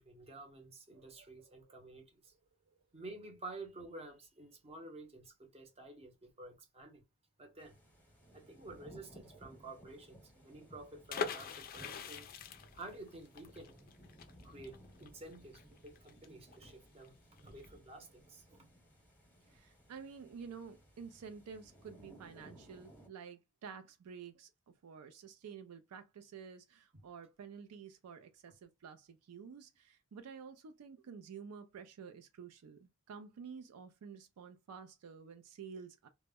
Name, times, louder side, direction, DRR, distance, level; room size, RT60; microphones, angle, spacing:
voice 1, 0.0-2.3 2.9-7.0 7.4-7.8 8.3-12.3 12.7-13.7 14.4-17.1 17.4-18.7, right 2 dB, 25° right, 0.7 m, -51 dB
voice 2, 0.9-1.8 19.5-24.5 24.8-36.1, right 6 dB, 75° right, 0.4 m, -51 dB
sound 1, 7.6-23.1, right 1 dB, 5° left, 0.8 m, -60 dB
sound 2, 11.1-16.7 17.0-17.1 17.4-17.7, left 6 dB, 40° left, 0.3 m, -43 dB
2.1 x 2.0 x 3.4 m
head